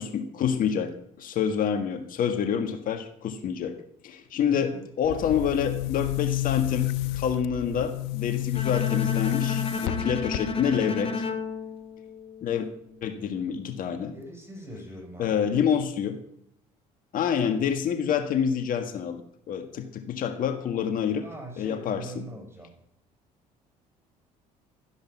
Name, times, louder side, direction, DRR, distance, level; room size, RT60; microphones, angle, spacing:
voice 1, 0.0-3.7 4.0-4.7 5.0-6.9 7.1-11.1 12.4-12.7 13.0-14.1 15.2-16.2 17.1-21.3 21.6-22.2, left 8 dB, 60° left, 6 dB, 1.6 m, -27 dB
voice 2, 4.5-4.8 14.1-15.6 21.2-22.7, right 1 dB, 15° right, 3 dB, 5.7 m, -42 dB
Boom, 5.0-10.9, left 18 dB, 85° left, 0.5 m, -30 dB
Bowed string instrument, 8.5-12.7, left 4 dB, 35° left, 1.6 m, -32 dB
13.0 x 10.5 x 5.9 m, 0.71 s
supercardioid pair, 75°, 16 cm